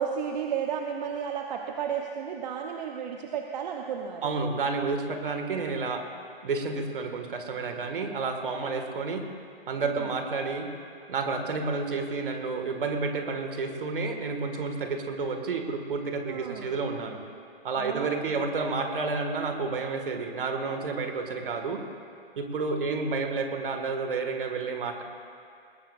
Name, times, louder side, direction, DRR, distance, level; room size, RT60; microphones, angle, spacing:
voice 1, 0.0-4.3 9.2-9.4 9.8-10.1 16.3-16.8 17.8-18.5 22.9-23.1, right 7 dB, 45° right, 2 dB, 0.9 m, -33 dB
voice 2, 4.2-6.1 6.4-9.3 9.7-10.7 11.1-17.2 17.6-21.8 22.4-25.0, right 4 dB, 60° right, 5 dB, 1.9 m, -30 dB
21.5 x 19.5 x 2.5 m, 2.4 s
figure-of-eight pair, 115°, 30 cm